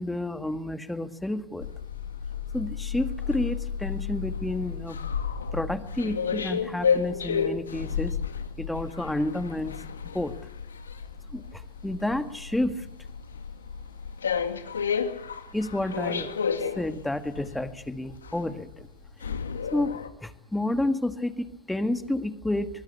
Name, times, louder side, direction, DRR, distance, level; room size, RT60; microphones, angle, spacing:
voice 1, 0.0-1.7 2.5-5.0 5.5-8.2 8.6-9.8 10.1-10.3 11.3-12.9 15.5-16.3 16.8-18.9 19.7-22.7, left 1 dB, 5° left, 10 dB, 2.0 m, -30 dB
sound 1, 1.6-20.1, left 6 dB, 90° left, 2.3 m, -32 dB
24.5 x 20.5 x 8.5 m, 0.82 s
hypercardioid pair, 105°, 0 cm